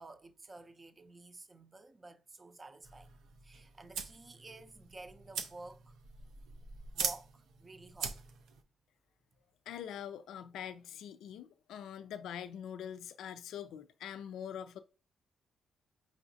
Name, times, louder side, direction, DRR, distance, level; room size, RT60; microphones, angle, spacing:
voice 1, 0.0-3.1 3.4-5.9 6.9-8.2, right 2 dB, 30° right, 0.5 m, -52 dB
sound 1, 2.8-8.6, right 6 dB, 85° right, 0.5 m, -42 dB
voice 2, 9.7-14.8, left 9 dB, 85° left, 0.3 m, -44 dB
4.9 x 3.0 x 2.6 m
cardioid pair, 80°, 0 cm